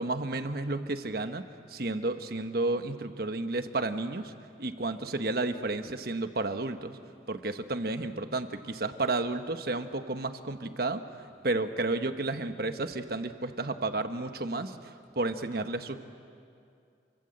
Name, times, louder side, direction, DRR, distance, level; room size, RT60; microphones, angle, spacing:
voice 1, 0.0-4.3 4.6-7.0 7.3-11.0 11.4-16.0, right 2 dB, 55° right, 8 dB, 1.2 m, -32 dB
27.5 x 24.5 x 7.9 m, 2.4 s
head